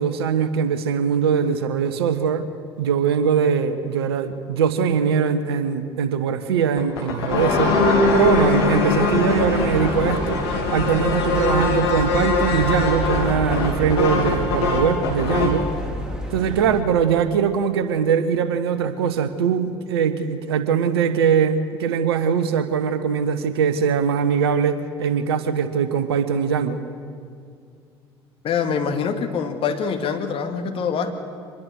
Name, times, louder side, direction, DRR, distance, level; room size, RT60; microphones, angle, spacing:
voice 1, 0.0-2.5 2.8-7.7 8.1-10.4 10.7-15.7 16.3-26.8, right 7 dB, 70° right, 12 dB, 1.2 m, -21 dB
sound 1, 6.8-15.6, left 3 dB, 70° left, 3.1 m, -22 dB
sound 2, 9.3-16.8, right 1 dB, 5° right, 3.5 m, -30 dB
voice 2, 28.4-31.1, left 6 dB, 45° left, 5 dB, 2.3 m, -24 dB
24.5 x 21.0 x 6.6 m, 2.3 s
figure-of-eight pair, 60°, 13 cm